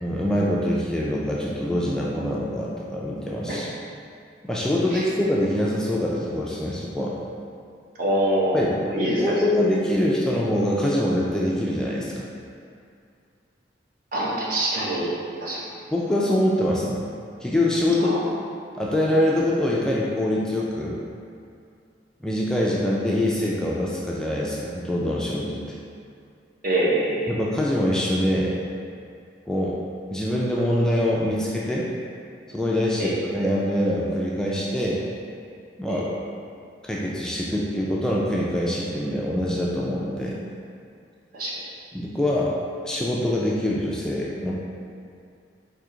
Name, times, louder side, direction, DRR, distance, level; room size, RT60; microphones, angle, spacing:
voice 1, 0.0-3.7 4.5-7.2 8.5-8.7 9.2-12.3 15.9-17.0 17.4-18.2 18.7-21.0 22.2-25.6 27.3-28.6 29.5-29.8 30.1-31.9 32.5-35.0 35.8-36.1 36.8-40.4 41.9-42.5 42.8-44.5, left 1 dB, 5° left, -5 dB, 0.3 m, -24 dB
voice 2, 8.0-9.3 14.1-15.1 15.4-15.7 18.0-18.3 26.6-27.3 33.0-33.2 35.9-36.1 41.3-41.6, right 1 dB, 50° right, -5 dB, 0.9 m, -25 dB
4.8 x 2.8 x 3.7 m, 2.4 s
head